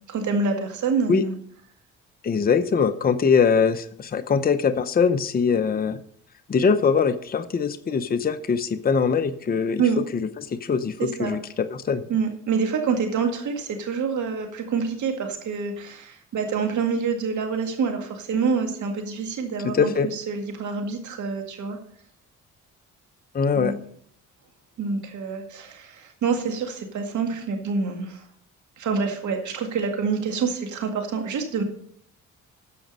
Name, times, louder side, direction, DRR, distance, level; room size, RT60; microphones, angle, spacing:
voice 1, 0.1-1.3 9.8-10.0 11.0-11.4 12.1-21.8 23.5-23.7 24.8-28.2 28.8-31.6, right 5 dB, 75° right, 4 dB, 2.0 m, -26 dB
voice 2, 2.2-6.0 6.5-9.8 10.1-10.9 11.2-12.0 19.7-20.1 23.3-23.8, left 6 dB, 30° left, 9 dB, 0.7 m, -22 dB
14.0 x 5.2 x 5.4 m, 0.64 s
cardioid pair, 90°, 30 cm